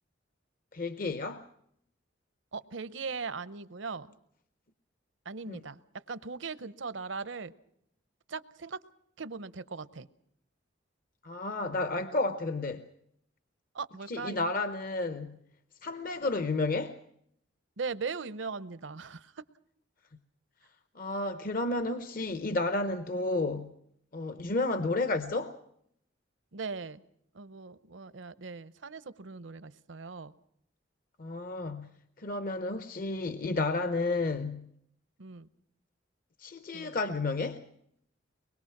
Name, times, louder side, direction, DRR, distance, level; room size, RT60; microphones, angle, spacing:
voice 1, 0.7-1.5 5.5-5.6 11.2-12.8 14.1-15.4 15.8-17.0 20.9-23.7 24.1-25.5 31.2-31.9 32.2-34.7 36.4-37.6, left 2 dB, 50° left, 10 dB, 0.8 m, -31 dB
voice 2, 2.5-4.1 5.2-7.5 8.3-8.8 9.2-10.1 13.7-14.5 17.8-19.3 26.5-27.0 27.3-30.3 35.2-35.5 36.7-36.9, right 4 dB, 75° right, 15 dB, 0.8 m, -39 dB
23.5 x 21.0 x 5.9 m, 0.73 s
head